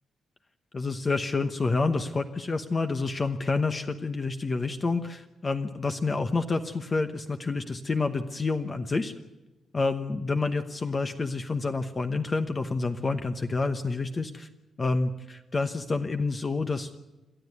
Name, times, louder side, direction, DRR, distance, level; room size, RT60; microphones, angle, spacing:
voice 1, 0.7-9.1 9.7-14.5 14.8-17.0, left 3 dB, 25° left, 7 dB, 1.0 m, -28 dB
28.5 x 13.0 x 9.4 m, 1.1 s
wide cardioid pair, 180°, 0 cm